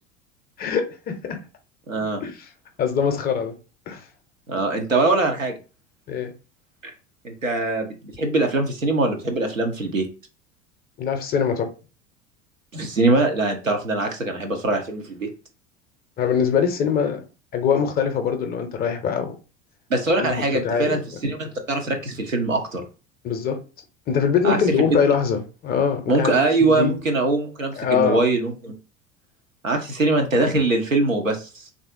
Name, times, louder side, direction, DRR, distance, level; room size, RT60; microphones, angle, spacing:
voice 1, 0.6-1.4 2.2-2.3 2.8-3.5 3.9-4.0 6.1-6.3 11.0-11.7 16.2-17.2 17.5-19.4 20.2-21.0 23.2-23.6 24.1-26.3 26.6-26.9 27.7-28.2, left 7 dB, 25° left, 0.5 m, -23 dB
voice 2, 1.9-2.2 4.5-5.6 7.2-10.1 12.7-15.3 19.9-22.8 24.4-24.6 24.9-25.0 26.1-28.7 29.6-31.7, right 2 dB, 90° right, 0.7 m, -22 dB
3.3 x 2.5 x 2.4 m
figure-of-eight pair, 75°, 38 cm